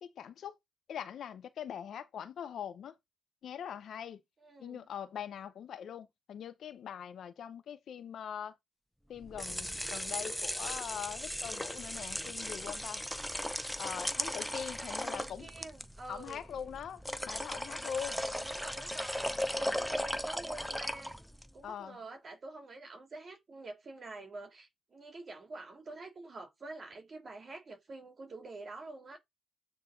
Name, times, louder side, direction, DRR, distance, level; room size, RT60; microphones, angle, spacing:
voice 1, 0.0-0.6 0.9-2.9 3.4-4.2 4.6-8.6 9.1-13.0 13.8-15.5 16.1-18.3 21.6-22.0, left 8 dB, 65° left, 0.7 m, -42 dB
voice 2, 4.4-4.9 14.8-16.4 18.3-21.2 21.5-29.2, right 2 dB, 40° right, 3.2 m, -47 dB
sound 1, 9.2-21.5, equal, ahead, 0.6 m, -37 dB
8.3 x 4.0 x 3.9 m
cardioid pair, 90°, 0 cm